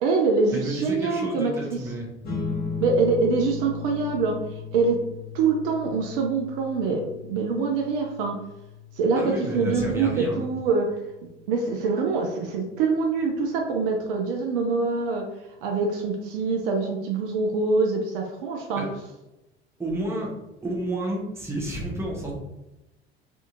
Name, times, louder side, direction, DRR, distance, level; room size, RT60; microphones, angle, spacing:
voice 1, 0.0-1.8 2.8-4.4 4.7-5.0 5.3-8.4 9.0-10.9 11.5-15.3 15.6-18.9, right 4 dB, 50° right, 2 dB, 0.5 m, -24 dB
voice 2, 0.5-2.1 9.2-10.5 18.8-18.9 19.8-20.3 20.6-22.3, right 1 dB, 5° right, -2 dB, 0.7 m, -30 dB
sound 1, 2.2-13.0, left 5 dB, 30° left, 1.0 m, -37 dB
2.6 x 2.4 x 2.4 m, 0.95 s
figure-of-eight pair, 70°, 34 cm